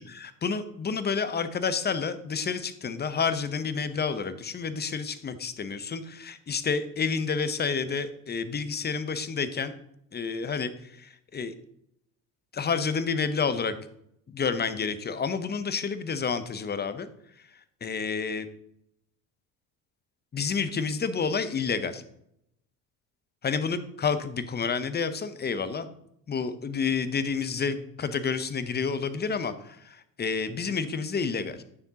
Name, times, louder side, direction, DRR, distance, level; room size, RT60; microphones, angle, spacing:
voice 1, 0.0-9.7 10.1-11.5 12.5-13.8 14.3-17.1 17.8-18.5 20.3-22.0 23.4-25.9 26.3-31.6, left 5 dB, 20° left, 12 dB, 0.7 m, -29 dB
8.9 x 6.6 x 2.8 m, 0.75 s
hypercardioid pair, 65°, 44 cm